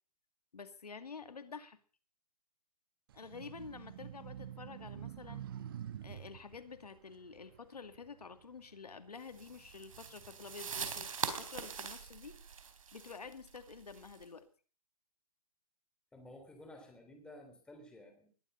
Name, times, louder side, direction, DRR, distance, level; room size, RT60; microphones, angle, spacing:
voice 1, 0.5-1.8 3.1-5.5 6.0-12.4 12.9-14.5, left 5 dB, 85° left, 10 dB, 2.4 m, -49 dB
sound 1, 3.1-8.7 9.2-11.0, right 10 dB, 35° right, 1.3 m, -48 dB
sound 2, 9.3-14.2, right 6 dB, 60° right, 3.8 m, -42 dB
voice 2, 16.1-18.3, left 1 dB, 5° left, 4 dB, 3.3 m, -53 dB
20.5 x 12.5 x 5.5 m, 0.42 s
hypercardioid pair, 155°, 20 cm